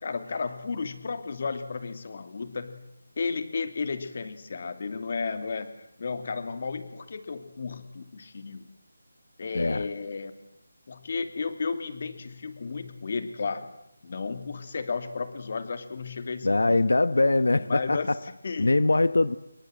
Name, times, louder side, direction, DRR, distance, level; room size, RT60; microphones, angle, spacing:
voice 1, 0.0-2.8 3.2-8.7 9.4-10.4 10.9-13.7 14.0-16.8 17.6-18.7, left 4 dB, 40° left, 9 dB, 2.7 m, -33 dB
voice 2, 16.4-18.0 18.6-19.4, left 2 dB, 85° left, 14 dB, 1.2 m, -22 dB
26.5 x 23.0 x 7.7 m, 0.81 s
figure-of-eight pair, 170°, 0 cm